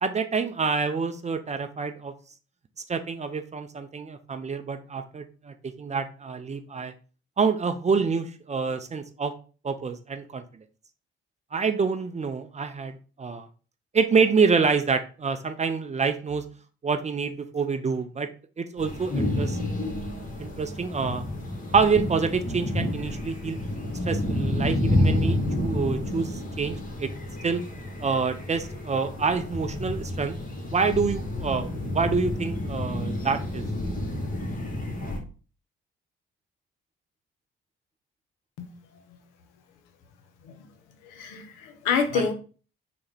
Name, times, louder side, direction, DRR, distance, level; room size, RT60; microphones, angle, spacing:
voice 1, 0.0-2.1 2.9-6.9 7.4-9.3 9.6-10.4 11.5-13.5 13.9-16.5 16.8-18.3 18.6-19.6 20.4-21.2 21.7-23.6 24.1-27.1 27.4-27.6 28.0-30.4 30.7-33.7 42.1-42.3, right 5 dB, 25° right, 8 dB, 0.4 m, -27 dB
sound 1, 18.8-35.2, left 1 dB, 30° left, 0.9 m, -29 dB
voice 2, 41.0-42.3, left 6 dB, 75° left, 7 dB, 0.6 m, -28 dB
3.2 x 2.1 x 3.4 m, 0.38 s
hypercardioid pair, 40°, 30 cm